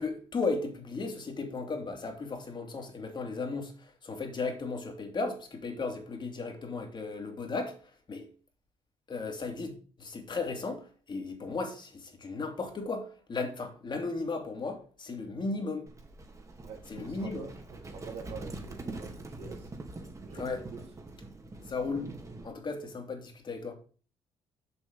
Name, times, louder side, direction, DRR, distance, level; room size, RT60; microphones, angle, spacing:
voice 1, 0.0-7.8 8.1-8.3 9.1-9.7 10.0-15.9 16.9-17.5 20.3-20.7 21.7-22.1 22.4-23.7, left 3 dB, 45° left, 2.7 m, -35 dB
Livestock farm animals working animals, 15.9-22.5, right 2 dB, 30° right, 2.1 m, -44 dB
voice 2, 16.6-17.5 17.9-19.7 20.2-20.8, right 5 dB, 75° right, 2.8 m, -46 dB
7.2 x 6.4 x 5.2 m
hypercardioid pair, 55°, 11 cm